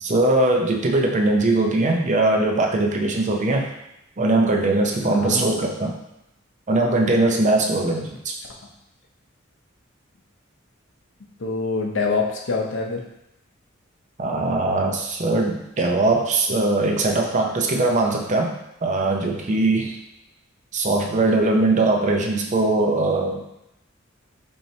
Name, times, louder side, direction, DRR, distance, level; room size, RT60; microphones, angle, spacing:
voice 1, 0.0-3.7 4.2-5.9 6.7-8.3 14.2-18.5 18.8-20.0 20.7-23.4, right 2 dB, 35° right, 1 dB, 0.5 m, -21 dB
voice 2, 5.0-5.4 11.4-13.0, left 4 dB, 65° left, 0 dB, 0.7 m, -25 dB
4.3 x 3.1 x 2.7 m, 0.85 s
head